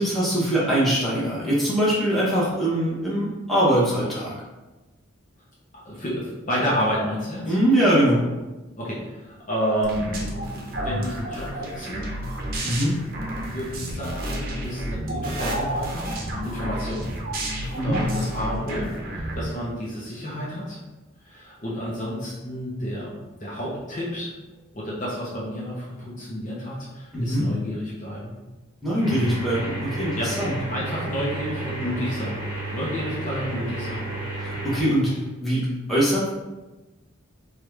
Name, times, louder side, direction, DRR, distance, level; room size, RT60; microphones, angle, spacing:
voice 1, 0.0-4.3 7.5-8.2 12.6-12.9 17.7-18.0 27.1-27.5 28.8-30.5 34.4-35.1 35.4-36.3, right 1 dB, ahead, -8 dB, 1.1 m, -22 dB
voice 2, 5.7-7.6 8.8-12.2 13.4-17.1 17.8-20.8 21.2-24.3 24.7-28.3 30.2-30.3 30.7-32.4 32.7-34.1, equal, 35° left, -6 dB, 0.7 m, -30 dB
sound 1, 9.8-19.4, right 1 dB, 45° right, 0.7 m, -31 dB
sound 2, 29.0-34.8, right 2 dB, 25° right, 1.4 m, -32 dB
4.7 x 2.4 x 3.3 m, 1.1 s
head